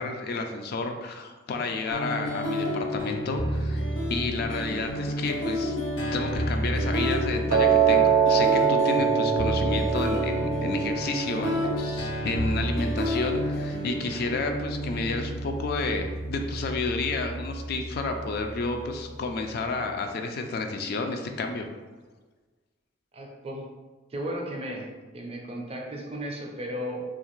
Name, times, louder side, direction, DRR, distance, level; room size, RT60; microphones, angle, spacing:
voice 1, 0.0-3.8 4.1-5.8 6.1-21.7, left 3 dB, 55° left, 5 dB, 0.3 m, -31 dB
sound 1, 1.9-19.9, equal, 90° left, 0.7 m, -30 dB
Piano, 7.5-13.6, right 7 dB, 90° right, 0.4 m, -24 dB
voice 2, 23.1-23.7 24.1-24.9 25.1-27.0, equal, 35° right, 0 dB, 0.4 m, -34 dB
2.5 x 2.4 x 3.0 m, 1.3 s
head